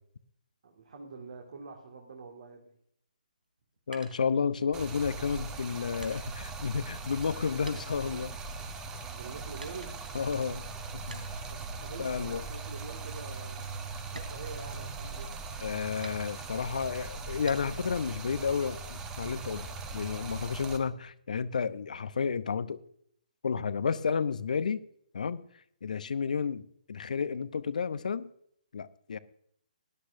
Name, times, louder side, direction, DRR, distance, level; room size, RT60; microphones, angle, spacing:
voice 1, 0.6-2.8 7.6-8.5 9.1-9.9 11.5-13.7 14.1-15.3, right 4 dB, 55° right, 2.1 m, -46 dB
sound 1, 3.4-4.9 5.5-7.4 7.7-8.8 9.6-10.2 11.1-11.6 12.0-12.3 12.7-12.8 13.2-13.4 14.0-15.2 16.0-16.7 17.5-18.0 18.4-19.2, right 2 dB, 80° right, 3.3 m, -50 dB
voice 2, 3.9-8.3 10.1-10.6 10.9-11.2 12.0-12.4 15.6-19.7 19.9-22.8 23.4-24.9 25.1-25.4 25.8-28.3 28.7-29.2, left 6 dB, 60° left, 0.8 m, -31 dB
Stream, 4.7-20.8, right 4 dB, 15° right, 1.1 m, -40 dB
19.0 x 11.5 x 2.7 m
figure-of-eight pair, 135°, 5 cm